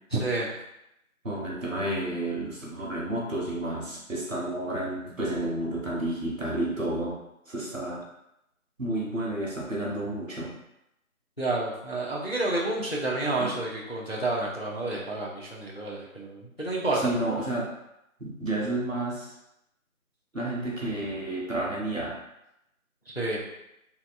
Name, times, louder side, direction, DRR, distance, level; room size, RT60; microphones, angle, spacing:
voice 1, 0.1-0.5 11.4-17.1 23.1-23.4, right 2 dB, 45° left, -3 dB, 0.4 m, -29 dB
voice 2, 1.2-7.2 7.5-8.0 8.8-10.5 13.4-13.6 16.9-17.7 18.2-19.3 20.3-22.2, right 1 dB, 60° right, -4 dB, 1.0 m, -31 dB
2.7 x 2.2 x 2.5 m, 0.85 s
figure-of-eight pair, 170°, 44 cm